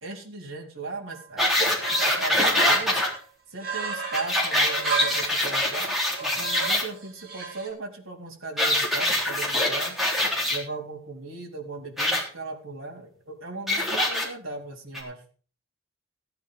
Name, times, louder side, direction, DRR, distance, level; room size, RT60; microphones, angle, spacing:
voice 1, 0.0-1.5 1.9-3.0 3.5-5.9 6.2-10.0 10.5-15.2, right 3 dB, 70° right, 0 dB, 4.0 m, -37 dB
sound 1, 1.1-1.2 1.5-3.2 3.6-5.4 6.0-7.7, right 5 dB, 45° right, 5.1 m, -33 dB
sound 2, 1.4-3.1 4.1-6.8 8.6-10.6 12.0-12.2 13.7-14.3 14.9-15.0, left 1 dB, ahead, 3.6 m, -24 dB
15.5 x 9.0 x 5.5 m, 0.40 s
head